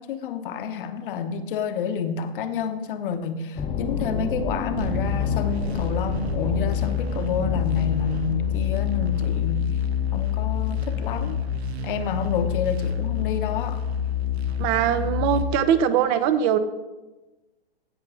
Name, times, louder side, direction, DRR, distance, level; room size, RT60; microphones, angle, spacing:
voice 1, 0.0-9.8 10.1-11.4 11.8-13.8, left 6 dB, 55° left, 9 dB, 1.0 m, -29 dB
sound 1, 3.6-9.5, left 4 dB, 15° left, 0.8 m, -31 dB
sound 2, 4.8-15.4, left 7 dB, 85° right, 1.0 m, -27 dB
voice 2, 14.6-16.6, right 9 dB, 30° right, 13 dB, 0.7 m, -21 dB
16.0 x 5.4 x 3.8 m, 1.1 s
hypercardioid pair, 125°, 31 cm